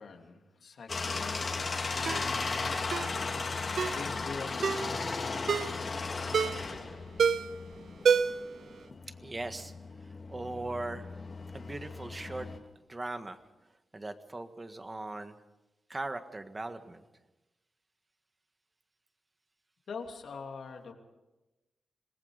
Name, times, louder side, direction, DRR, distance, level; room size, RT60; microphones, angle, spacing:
voice 1, 0.0-3.1 3.9-7.0 19.9-20.9, left 5 dB, 75° left, 3 dB, 3.1 m, -45 dB
sound 1, 0.9-12.6, left 4 dB, 45° left, 2.8 m, -36 dB
Ringtone, 2.1-2.3 2.9-3.1 3.8-4.0 4.6-4.9 5.5-5.8 6.3-6.7 7.2-7.6 8.1-8.5 8.8-8.9, right 6 dB, 70° right, 0.7 m, -27 dB
voice 2, 9.2-9.7 10.3-11.1 11.5-12.5 12.9-13.4 13.9-15.4 15.9-17.0, right 2 dB, 25° right, 8 dB, 1.6 m, -39 dB
26.5 x 20.0 x 5.1 m, 1.0 s
wide cardioid pair, 105°, 0 cm